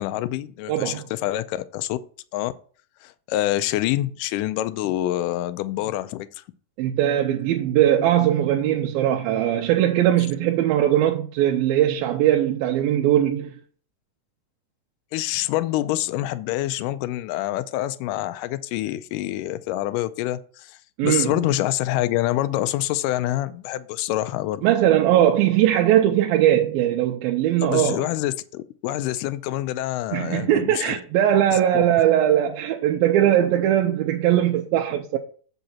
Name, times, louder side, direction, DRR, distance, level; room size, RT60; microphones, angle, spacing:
voice 1, 0.0-2.0 2.3-2.5 3.0-6.3 15.1-24.6 27.6-31.0 31.5-31.8, left 15 dB, 80° left, 2.0 m, -26 dB
voice 2, 0.7-1.0 6.8-13.5 21.0-21.3 24.6-28.0 30.1-35.2, right 11 dB, 90° right, 2.5 m, -20 dB
8.0 x 5.8 x 4.3 m
omnidirectional pair, 4.1 m